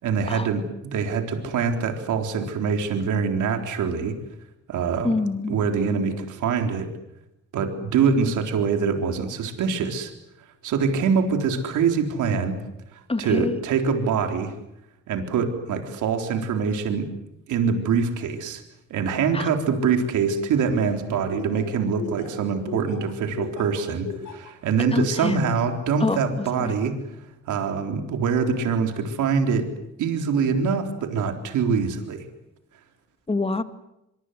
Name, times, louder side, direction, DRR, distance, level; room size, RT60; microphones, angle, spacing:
voice 1, 0.0-4.2 4.7-5.1 5.5-6.9 7.5-10.1 10.6-12.5 12.9-14.5 15.1-17.1 17.5-18.6 18.9-29.7 30.0-32.3, right 5 dB, 80° right, 5 dB, 3.9 m, -24 dB
voice 2, 5.0-5.6 13.1-13.6 19.3-19.5 24.9-25.4 26.0-26.2 26.6-26.7 33.3-33.6, left 3 dB, 20° left, 10 dB, 2.1 m, -25 dB
Laughter, 20.6-24.5 25.0-25.4, left 5 dB, 80° left, 5.8 m, -35 dB
24.5 x 24.5 x 8.2 m, 0.87 s
cardioid pair, 90°, 30 cm